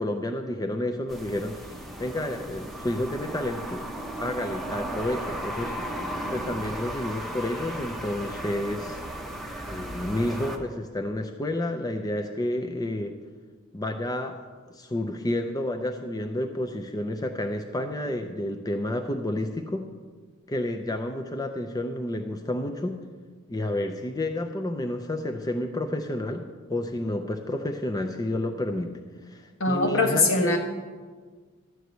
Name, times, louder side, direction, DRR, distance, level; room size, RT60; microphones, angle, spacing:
voice 1, 0.0-3.9 4.2-5.7 6.3-9.0 9.7-13.1 13.7-14.4 14.7-19.8 20.5-23.0 23.5-28.9 29.2-30.6, left 1 dB, 20° left, 5 dB, 0.5 m, -30 dB
sound 1, 1.1-10.6, right 1 dB, ahead, 0.9 m, -35 dB
voice 2, 29.6-30.6, left 2 dB, 65° left, 2 dB, 1.5 m, -22 dB
12.5 x 4.7 x 8.0 m, 1.5 s
head